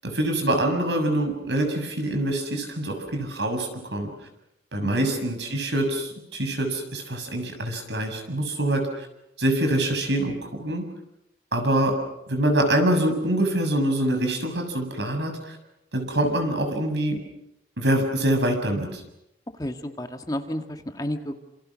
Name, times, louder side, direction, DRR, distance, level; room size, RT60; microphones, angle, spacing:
voice 1, 0.0-4.1 4.7-9.1 9.4-10.9 11.5-11.9 12.3-15.6 15.9-17.2 17.8-19.0, right 1 dB, 85° right, 5 dB, 6.9 m, -25 dB
voice 2, 19.6-21.4, left 1 dB, 20° left, 6 dB, 1.8 m, -31 dB
28.0 x 27.5 x 6.3 m, 0.84 s
head